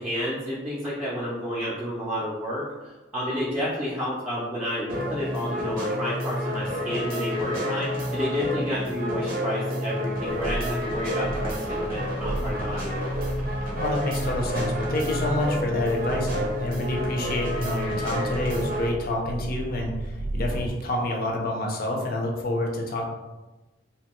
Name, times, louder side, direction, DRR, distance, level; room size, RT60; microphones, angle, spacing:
voice 1, 0.0-13.2, equal, 10° right, -9 dB, 0.5 m, -30 dB
sound 1, 4.9-18.9, equal, 50° right, 0.6 m, -30 dB
sound 2, 10.1-20.8 21.3-21.4, right 2 dB, 90° right, 0.3 m, -35 dB
voice 2, 13.7-23.1, left 1 dB, 50° left, 0 dB, 0.5 m, -28 dB
2.8 x 2.2 x 2.9 m, 1.1 s
head